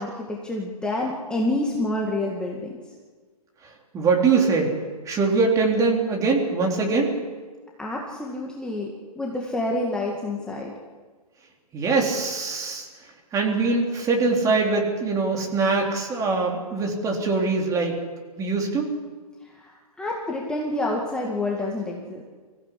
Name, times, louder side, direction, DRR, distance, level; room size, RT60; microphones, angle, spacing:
voice 1, 0.0-2.7 7.8-10.7 19.6-22.2, left 2 dB, 5° left, -2 dB, 2.1 m, -28 dB
voice 2, 3.9-4.7 5.1-7.1 11.7-12.9 13.3-17.9 18.4-18.9, right 4 dB, 15° right, 1 dB, 3.7 m, -22 dB
25.0 x 16.0 x 8.5 m, 1.5 s
hypercardioid pair, 140°, 20 cm